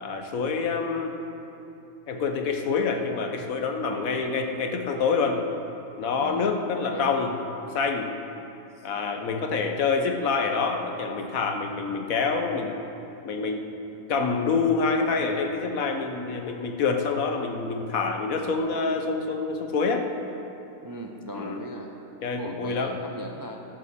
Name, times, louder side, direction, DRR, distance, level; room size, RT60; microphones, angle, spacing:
voice 1, 0.0-1.2 2.1-5.4 6.0-7.3 7.7-8.1 8.8-12.7 13.2-13.6 14.1-20.1 21.3-21.6 22.2-23.0, left 4 dB, 75° left, 5 dB, 1.4 m, -26 dB
voice 2, 6.2-7.1 8.7-8.9 20.8-21.9 22.4-23.6, equal, 25° right, 2 dB, 0.5 m, -38 dB
12.5 x 8.1 x 6.7 m, 2.9 s
omnidirectional pair, 1.5 m